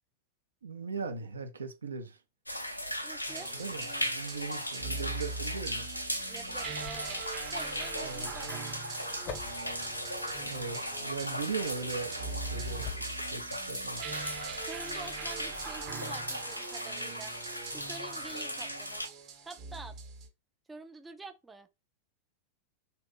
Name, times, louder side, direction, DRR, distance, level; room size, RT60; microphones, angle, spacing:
voice 1, 0.6-2.2 3.5-5.9 8.0-8.6 10.4-14.0, right 5 dB, 75° right, 0.5 m, -39 dB
sound 1, 2.5-19.1, equal, 85° left, 0.5 m, -37 dB
voice 2, 3.0-3.5 6.3-7.2 7.5-9.2 14.6-17.3 17.7-19.1 19.4-19.9 20.7-21.7, right 3 dB, 10° right, 0.3 m, -47 dB
sound 2, 3.3-20.3, right 5 dB, 35° right, 0.7 m, -43 dB
sound 3, 6.8-13.6 14.1-15.1 15.4-15.9, left 4 dB, 40° left, 0.6 m, -47 dB
2.7 x 2.3 x 3.7 m
figure-of-eight pair, 90°, 0 cm